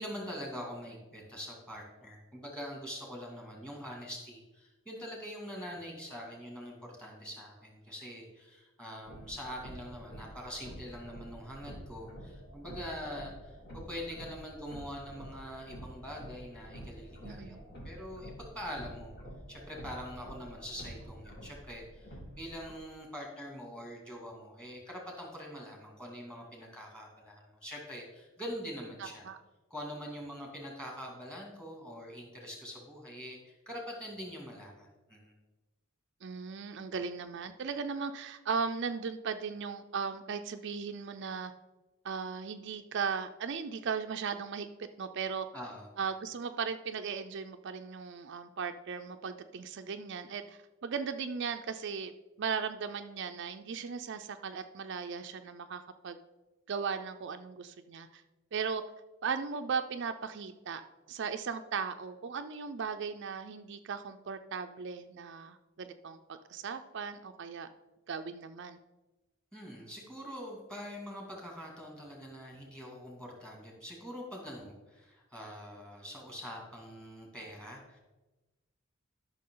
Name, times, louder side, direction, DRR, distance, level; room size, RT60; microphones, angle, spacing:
voice 1, 0.0-19.1 19.5-29.2 29.7-35.3 45.5-45.9 69.5-78.0, equal, 5° left, 0 dB, 2.3 m, -44 dB
sound 1, 9.0-22.7, equal, 55° left, 2.7 m, -48 dB
voice 2, 17.2-17.6 29.0-29.4 36.2-41.5 42.0-45.5 46.0-52.1 52.4-56.2 56.7-58.2 58.5-58.8 59.2-60.8 61.1-67.7 68.1-68.8, right 6 dB, 60° right, 7 dB, 0.4 m, -37 dB
12.5 x 6.1 x 3.8 m, 1.1 s
head